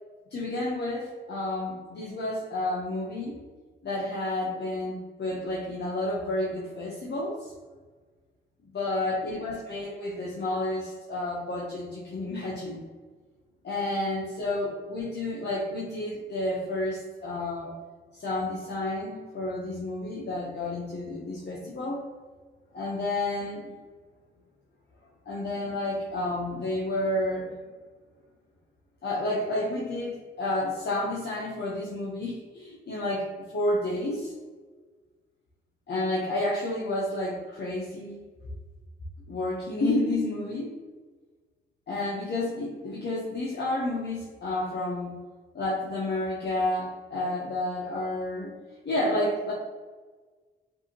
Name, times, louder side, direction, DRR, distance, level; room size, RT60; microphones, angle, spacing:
voice 1, 0.3-3.4 3.8-7.5 8.7-12.8 13.6-17.7 18.1-22.0 22.7-23.7 25.2-27.5 29.0-33.3 33.5-34.3 35.9-38.2 39.3-40.7 41.9-45.2 45.5-48.5 48.8-49.5, left 1 dB, 55° left, -6 dB, 1.0 m, -30 dB
5.3 x 2.7 x 2.9 m, 1.4 s
cardioid pair, 60°, 21 cm